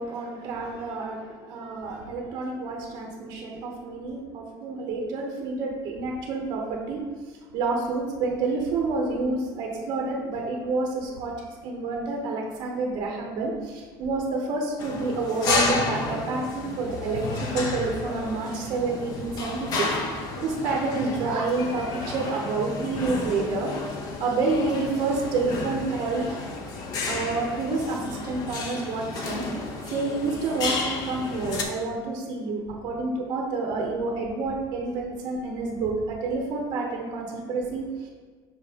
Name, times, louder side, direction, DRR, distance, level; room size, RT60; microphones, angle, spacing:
voice 1, 0.0-7.0 7.5-23.7 24.2-26.4 27.1-29.4 29.9-38.1, right 3 dB, 40° right, 0 dB, 0.7 m, -29 dB
sound 1, 14.8-31.6, left 3 dB, 40° left, 0.7 m, -31 dB
5.4 x 3.5 x 4.9 m, 1.4 s
cardioid pair, 180°, 10 cm